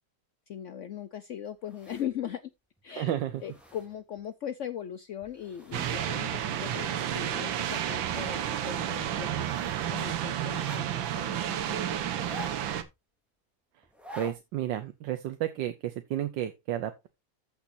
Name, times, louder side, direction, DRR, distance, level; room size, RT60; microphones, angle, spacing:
voice 1, 0.5-2.5 2.8-9.5 9.9-12.4, left 9 dB, 80° left, 0.6 m, -39 dB
sound 1, 1.6-2.3 2.8-2.9 3.2-4.2 5.2-6.1 6.4-6.5 7.0-7.9 8.2-8.3 9.3-9.8 10.5-11.2 12.1-12.9 13.8-14.4 14.7-14.8, left 1 dB, ahead, 2.8 m, -48 dB
voice 2, 2.9-3.4 14.2-17.1, right 11 dB, 75° right, 1.5 m, -32 dB
sound 2, 5.7-12.8, right 10 dB, 90° right, 1.7 m, -31 dB
14.5 x 5.9 x 2.6 m
omnidirectional pair, 2.0 m